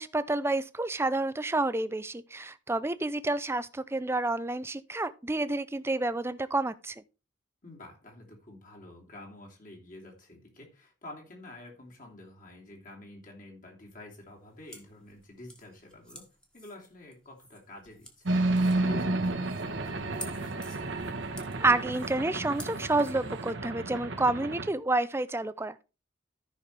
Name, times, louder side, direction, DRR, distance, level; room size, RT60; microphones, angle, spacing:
voice 1, 0.0-7.0 21.6-25.8, right 2 dB, 15° right, 0.5 m, -29 dB
voice 2, 7.6-16.3 16.5-18.3 18.8-20.7, left 1 dB, 45° left, 3.0 m, -49 dB
sound 1, 14.2-23.1, equal, 5° left, 1.5 m, -50 dB
sound 2, 18.3-24.7, right 2 dB, 75° right, 1.2 m, -31 dB
14.0 x 5.7 x 3.4 m
head